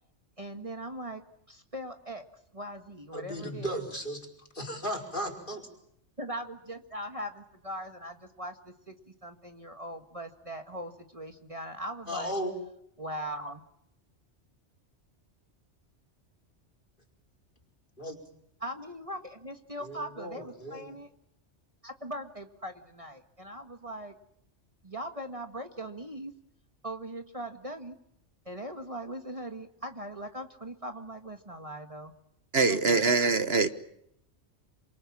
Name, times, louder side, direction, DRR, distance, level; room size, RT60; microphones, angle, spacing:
voice 1, 0.4-2.2 2.5-3.8 6.2-12.3 13.0-13.6 18.6-21.1 21.8-24.1 24.8-26.3 26.8-27.9 28.4-32.1 32.7-33.0, right 1 dB, 30° right, 6 dB, 1.7 m, -40 dB
voice 2, 3.1-4.3 4.5-5.7 12.1-12.5 18.0-18.2 19.8-20.9, equal, 45° left, 4 dB, 5.1 m, -36 dB
voice 3, 32.5-33.7, right 4 dB, 60° right, 10 dB, 1.5 m, -23 dB
28.0 x 25.5 x 7.4 m, 0.76 s
omnidirectional pair, 1.2 m